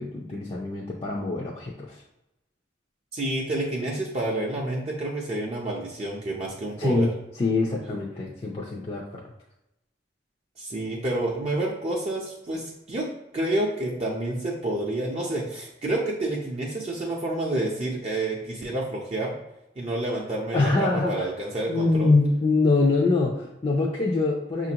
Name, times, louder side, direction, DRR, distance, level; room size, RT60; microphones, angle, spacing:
voice 1, 0.0-2.0 6.8-7.1 7.4-9.2 20.5-21.3 21.7-24.7, left 3 dB, 30° left, -3 dB, 0.5 m, -24 dB
voice 2, 3.1-7.1 10.6-13.1 13.3-19.3 19.8-22.1, right 1 dB, 35° right, -3 dB, 0.5 m, -29 dB
5.9 x 2.5 x 2.8 m, 0.90 s
head